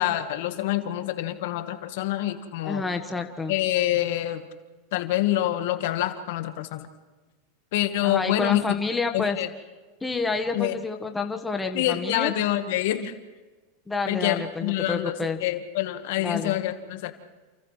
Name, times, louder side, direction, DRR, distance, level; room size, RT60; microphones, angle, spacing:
voice 1, 0.0-2.8 3.5-4.5 4.9-6.9 7.7-8.8 9.1-9.5 10.5-10.7 11.7-13.1 14.1-15.1 15.4-17.1, left 13 dB, 65° left, 8 dB, 1.5 m, -26 dB
voice 2, 2.6-3.6 8.0-9.4 10.0-12.3 13.9-15.4 16.2-16.6, left 4 dB, 10° left, 4 dB, 1.4 m, -29 dB
29.0 x 28.0 x 3.3 m, 1.3 s
supercardioid pair, 135°, 0 cm